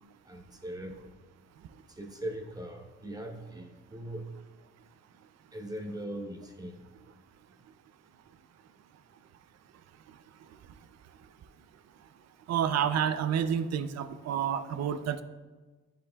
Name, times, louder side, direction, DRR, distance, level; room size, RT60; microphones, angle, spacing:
voice 1, 0.2-1.0 1.9-4.3 5.5-6.8, right 1 dB, 15° right, 2 dB, 1.0 m, -40 dB
voice 2, 12.5-15.2, right 8 dB, 60° right, 12 dB, 0.5 m, -29 dB
10.5 x 5.3 x 2.4 m, 1.3 s
cardioid pair, 90°, 30 cm